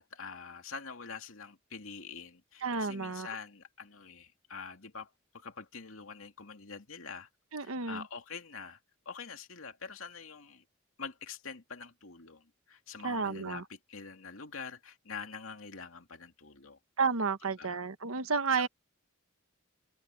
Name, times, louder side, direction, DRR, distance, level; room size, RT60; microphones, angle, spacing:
voice 1, 0.0-7.3 7.6-8.8 9.1-10.6 11.0-16.8 17.4-17.8 18.5-18.7, left 5 dB, 75° left, 2.6 m, -45 dB
voice 2, 2.6-3.3 7.5-8.0 13.0-13.6 17.0-18.7, right 5 dB, 80° right, 1.2 m, -31 dB
head